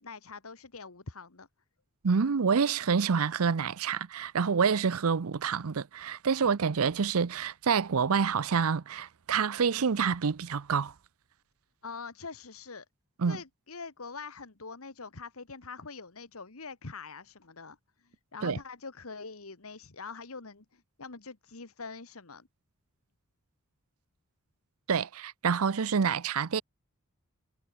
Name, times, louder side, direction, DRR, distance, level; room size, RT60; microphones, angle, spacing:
voice 1, 0.0-1.5 11.8-12.8 13.2-22.5, left 4 dB, 70° left, 1.6 m, -44 dB
voice 2, 2.0-10.9 13.2-13.4 18.4-18.6 24.9-26.6, right 6 dB, 75° right, 0.6 m, -27 dB
head